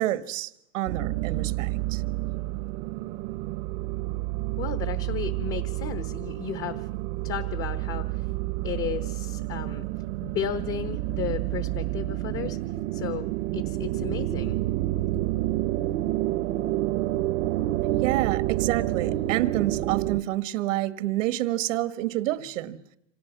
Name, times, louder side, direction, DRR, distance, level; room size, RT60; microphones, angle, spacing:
voice 1, 0.0-2.0 18.0-22.8, right 15 dB, 90° right, 1.8 m, -28 dB
sound 1, 0.9-20.2, right 16 dB, 55° right, 1.0 m, -29 dB
voice 2, 4.6-6.9 7.2-8.3 8.6-9.8 10.2-12.6 12.9-13.3 13.5-14.6, left 9 dB, 35° left, 1.1 m, -34 dB
27.0 x 26.5 x 6.1 m
supercardioid pair, 145°, 37 cm